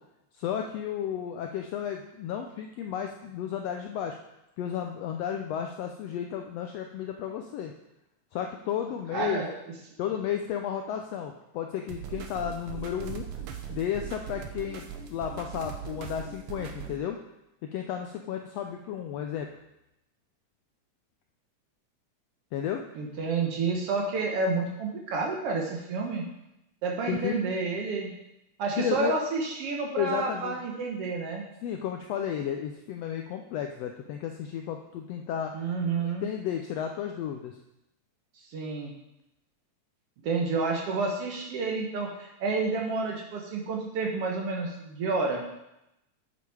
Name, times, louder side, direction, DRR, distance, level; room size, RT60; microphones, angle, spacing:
voice 1, 0.3-4.2 4.6-7.7 8.3-9.4 10.0-13.3 13.7-17.2 17.7-19.5 22.5-22.8 27.1-27.4 28.8-29.1 30.0-30.6 31.6-35.5 36.0-37.6, left 9 dB, 80° left, 4 dB, 1.5 m, -33 dB
voice 2, 9.1-9.5 22.9-26.2 26.8-28.1 28.6-31.4 35.5-36.3 38.4-38.9 40.2-45.4, right 4 dB, 60° right, 0 dB, 1.7 m, -30 dB
sound 1, 11.9-17.0, right 8 dB, 85° right, 2.4 m, -39 dB
9.0 x 7.0 x 4.8 m, 0.88 s
omnidirectional pair, 3.5 m